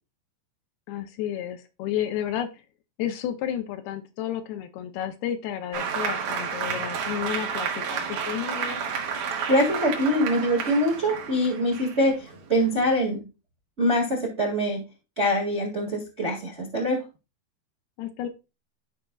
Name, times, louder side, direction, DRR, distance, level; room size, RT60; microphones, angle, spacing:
voice 1, 0.9-2.6 3.0-8.9 18.0-18.3, left 10 dB, 80° left, 8 dB, 2.5 m, -32 dB
Applause, 5.7-12.9, right 6 dB, 65° right, 2.6 m, -31 dB
voice 2, 9.5-13.2 13.8-14.8 15.2-17.0, equal, 35° right, -2 dB, 1.0 m, -24 dB
13.0 x 5.1 x 2.3 m, 0.29 s
omnidirectional pair, 4.6 m